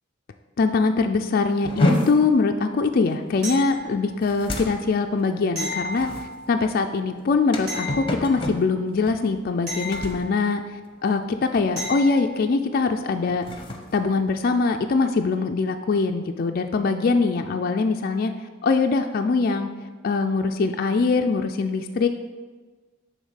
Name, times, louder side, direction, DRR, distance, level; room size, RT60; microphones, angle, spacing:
voice 1, 0.6-13.5 13.9-18.3 18.6-19.7 20.0-22.1, left 4 dB, 50° left, 4 dB, 0.4 m, -23 dB
sound 1, 1.6-11.3 11.5-11.9 12.3-12.6 13.1-15.0, left 1 dB, 25° left, 0.9 m, -30 dB
sound 2, 3.4-4.2 5.5-6.6 7.7-8.7 9.7-10.7 11.8-12.4 15.1-15.2, left 1 dB, 55° right, 2.3 m, -34 dB
9.4 x 3.6 x 5.6 m, 1.4 s
head